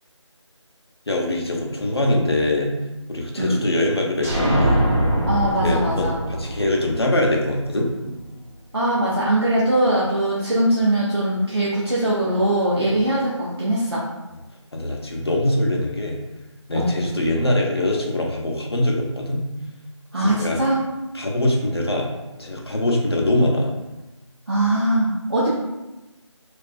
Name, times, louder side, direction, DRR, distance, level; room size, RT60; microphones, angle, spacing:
voice 1, 1.1-2.7 3.1-4.8 5.6-7.9 12.8-13.0 14.7-16.2 16.7-19.4 20.2-20.6 21.1-22.1 22.4-23.7, left 1 dB, 55° left, 0 dB, 0.5 m, -23 dB
sound 1, 4.2-7.9, equal, 30° right, 0.9 m, -23 dB
voice 2, 5.3-6.2 8.7-14.1 16.7-16.9 20.1-20.8 24.5-25.5, right 1 dB, 55° right, -8 dB, 0.6 m, -21 dB
2.4 x 2.3 x 2.4 m, 1.0 s
figure-of-eight pair, 175°, 16 cm